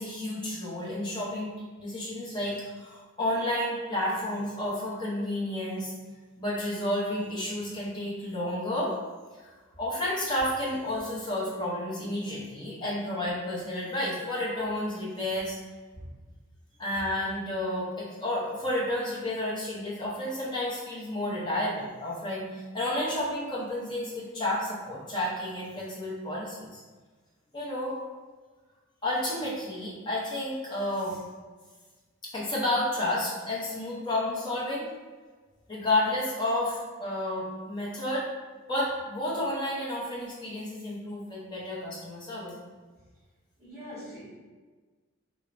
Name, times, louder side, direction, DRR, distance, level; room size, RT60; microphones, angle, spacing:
voice 1, 0.0-5.9 6.4-8.9 9.4-15.6 16.8-26.8 27.5-28.0 29.0-31.2 32.3-34.9 35.7-38.3 38.7-42.6, left 1 dB, 20° left, -6 dB, 0.6 m, -31 dB
voice 2, 43.6-44.2, equal, 15° right, -17 dB, 0.9 m, -42 dB
3.1 x 2.0 x 2.4 m, 1.4 s
head